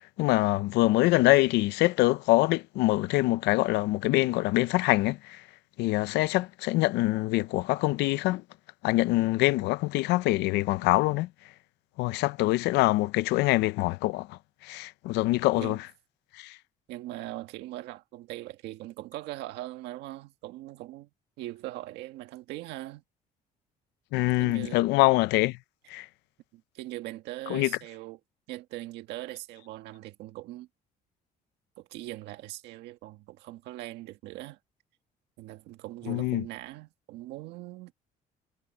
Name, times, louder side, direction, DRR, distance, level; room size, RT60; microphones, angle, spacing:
voice 1, 0.2-5.4 5.8-8.4 8.8-11.3 12.0-15.8 16.4-16.5 24.1-25.6 25.9-26.1 27.5-27.7 36.1-36.4, left 19 dB, 90° left, 0.6 m, -24 dB
voice 2, 16.9-21.1 21.4-23.0 24.4-24.9 26.5-28.2 28.5-30.7 31.8-34.6 35.4-37.9, right 16 dB, 90° right, 1.7 m, -41 dB
cardioid pair, 110°, 17 cm